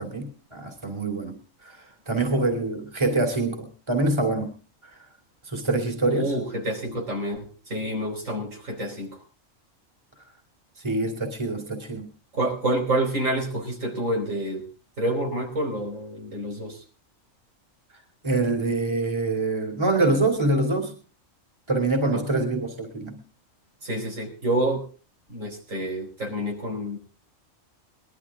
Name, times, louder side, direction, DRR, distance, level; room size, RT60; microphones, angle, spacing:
voice 1, 0.0-4.5 4.8-4.9 5.4-6.4 10.8-12.1 18.2-20.9 21.7-23.2, right 2 dB, 20° right, 3 dB, 2.9 m, -25 dB
voice 2, 6.1-9.2 12.3-14.7 15.0-16.8 22.1-22.2 23.8-24.8 25.3-27.0, right 1 dB, 75° right, 1 dB, 4.9 m, -28 dB
21.0 x 12.5 x 3.6 m, 0.37 s
omnidirectional pair, 1.4 m